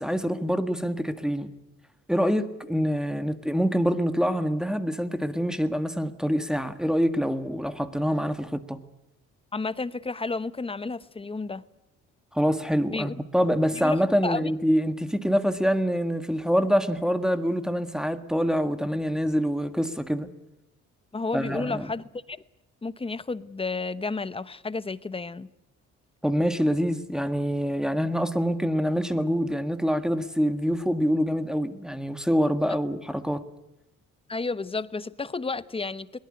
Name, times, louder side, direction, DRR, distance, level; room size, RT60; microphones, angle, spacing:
voice 1, 0.0-1.5 2.1-8.8 12.3-20.3 21.3-21.9 26.2-33.4, equal, ahead, 1.6 m, -25 dB
voice 2, 9.5-11.6 12.9-13.1 13.7-14.5 21.1-22.4 22.8-25.5 34.3-36.2, left 3 dB, 20° left, 0.9 m, -32 dB
22.0 x 18.0 x 9.8 m
cardioid pair, 90°, 30 cm